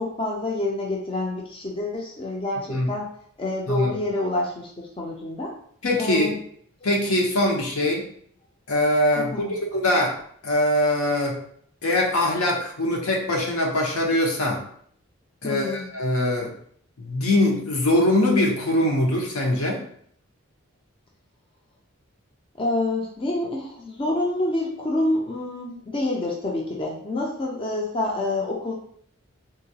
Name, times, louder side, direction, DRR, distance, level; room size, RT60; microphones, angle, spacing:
voice 1, 0.0-3.1 3.4-5.6 6.0-6.4 9.2-9.5 15.4-15.9 22.6-28.7, left 2 dB, 25° left, -2 dB, 0.4 m, -27 dB
voice 2, 5.8-6.3 6.8-8.1 8.7-10.2 10.4-11.4 11.8-14.6 15.4-16.5 17.0-19.8, left 1 dB, 80° left, 0 dB, 0.8 m, -22 dB
3.8 x 2.3 x 2.7 m, 0.62 s
head